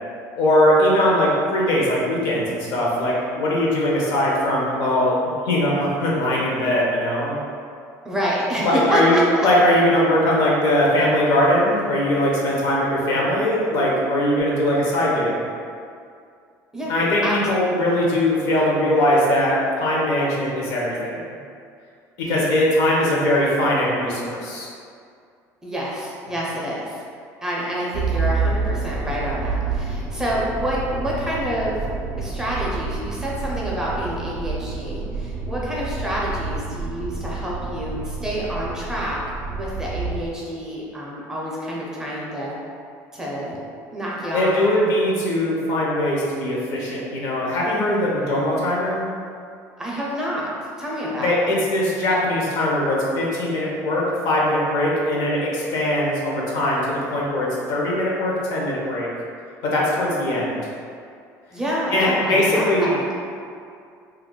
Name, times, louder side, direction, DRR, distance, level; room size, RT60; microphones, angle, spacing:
voice 1, 0.4-5.2 5.4-7.4 8.6-15.3 16.9-21.2 22.2-24.7 44.3-49.0 51.2-59.1 59.6-60.6 61.9-62.9, left 1 dB, 65° left, -4 dB, 0.7 m, -20 dB
voice 2, 8.0-9.5 16.7-17.0 17.2-17.4 17.6-17.9 25.6-27.0 27.4-31.8 32.2-42.6 43.1-43.6 43.9-44.5 49.8-50.5 50.8-51.3 61.5-63.1, equal, 10° right, -6 dB, 0.5 m, -27 dB
Motor vehicle (road), 27.9-40.3, right 4 dB, 70° right, 0.4 m, -28 dB
2.3 x 2.1 x 3.6 m, 2.3 s
cardioid pair, 140°, 7 cm